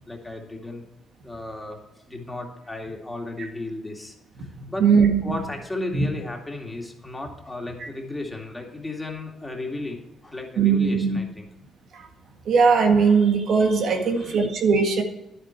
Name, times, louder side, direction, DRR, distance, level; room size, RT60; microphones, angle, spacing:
voice 1, 0.1-0.8 1.2-1.8 2.1-4.9 5.2-10.0 10.2-11.5 14.0-14.5, left 2 dB, 10° left, 1 dB, 2.4 m, -34 dB
voice 2, 4.8-5.4 5.9-6.1 7.8-7.9 10.6-11.2 11.9-12.1 12.5-15.0, right 5 dB, 70° right, 4 dB, 1.7 m, -19 dB
11.0 x 8.2 x 4.6 m, 0.94 s
cardioid pair, 90°, 0 cm